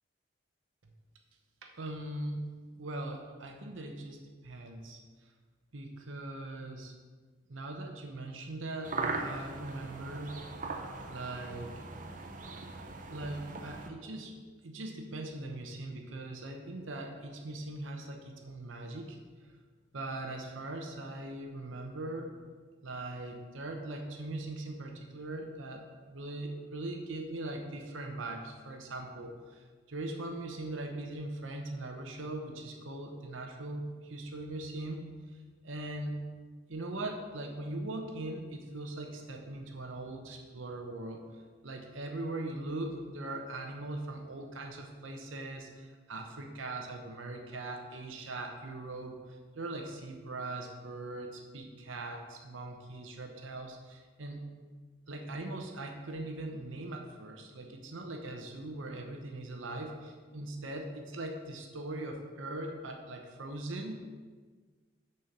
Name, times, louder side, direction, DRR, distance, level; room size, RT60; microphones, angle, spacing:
voice 1, 1.6-2.5 2.8-4.2 4.4-5.0 5.7-6.9 7.5-10.4 11.1-11.7 12.8-14.3 14.6-19.2 19.9-22.3 22.8-36.1 36.7-54.4 55.1-64.1, right 2 dB, 80° right, 3 dB, 0.8 m, -40 dB
sound 1, 8.8-13.9, right 3 dB, 40° right, 0.6 m, -39 dB
6.7 x 4.4 x 6.6 m, 1.5 s
head